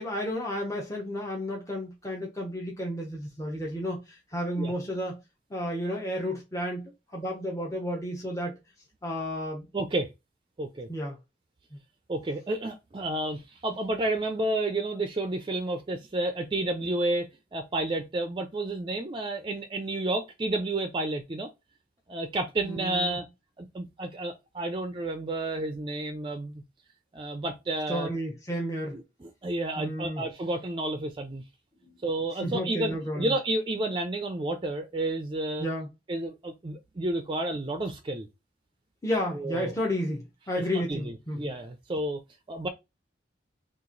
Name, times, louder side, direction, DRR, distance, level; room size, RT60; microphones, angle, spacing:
voice 1, 0.0-5.2 5.5-8.5 9.0-9.7 10.9-11.2 22.6-23.2 27.9-29.0 29.8-30.2 32.4-33.3 35.6-35.9 39.0-41.5, equal, 15° left, 0.7 m, -32 dB
voice 2, 9.7-10.1 10.6-10.9 12.1-21.5 22.1-23.3 23.6-26.6 27.1-28.1 28.9-31.4 32.0-35.7 36.1-38.3 39.3-39.7 40.7-42.2 42.5-42.7, right 2 dB, 25° right, 0.4 m, -31 dB
2.9 x 2.4 x 3.8 m
head